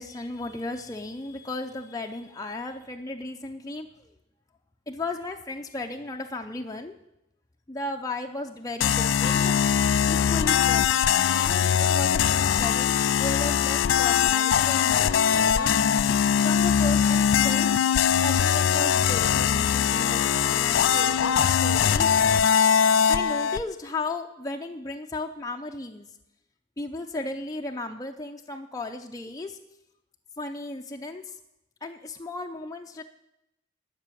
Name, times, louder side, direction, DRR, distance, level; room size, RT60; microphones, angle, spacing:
voice 1, 0.0-4.1 4.9-7.0 7.7-9.5 10.1-11.0 11.4-17.7 18.2-22.1 23.1-26.1 26.8-29.6 30.4-31.4 31.8-33.0, left 2 dB, 20° left, 3 dB, 0.7 m, -35 dB
sound 1, 8.8-23.6, left 8 dB, 90° left, 0.4 m, -22 dB
12.5 x 6.1 x 9.1 m, 0.87 s
head